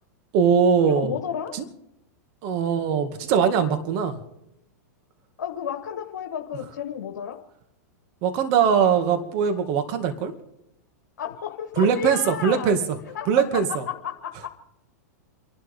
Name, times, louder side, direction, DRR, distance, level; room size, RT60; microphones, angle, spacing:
voice 1, 0.3-1.1 1.5-1.6 2.4-4.2 8.2-10.3 11.8-12.8 13.3-13.8, right 7 dB, 50° right, 8 dB, 2.2 m, -21 dB
voice 2, 0.9-1.5 5.4-7.4 11.2-12.7 13.1-14.5, left 9 dB, 80° left, 3 dB, 1.4 m, -32 dB
30.0 x 12.0 x 3.7 m, 0.81 s
hypercardioid pair, 115°, 9 cm